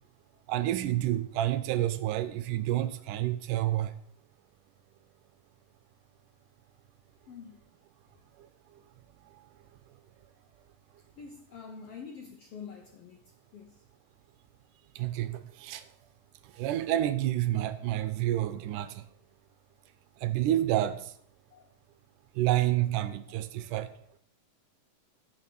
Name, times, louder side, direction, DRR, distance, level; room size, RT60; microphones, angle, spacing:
voice 1, 0.5-3.9 8.4-8.5 9.3-9.4 15.0-15.9 16.4-19.1 20.2-21.1 22.4-23.9, right 13 dB, 80° right, 2.1 m, -29 dB
voice 2, 7.3-7.7 8.1-8.3 11.2-13.8 21.5-21.7 23.3-23.4, left 6 dB, 75° left, 1.4 m, -47 dB
10.5 x 6.3 x 5.9 m
omnidirectional pair, 3.8 m